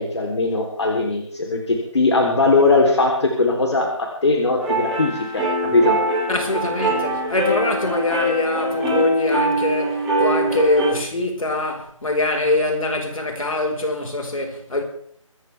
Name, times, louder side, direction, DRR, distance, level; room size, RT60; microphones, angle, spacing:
voice 1, 0.0-6.0, left 3 dB, 55° left, 3.7 m, -20 dB
sound 1, 4.6-10.9, right 1 dB, 5° right, 2.0 m, -22 dB
voice 2, 6.3-14.8, left 2 dB, 80° left, 4.9 m, -23 dB
24.5 x 14.5 x 3.5 m
figure-of-eight pair, 175°, 17 cm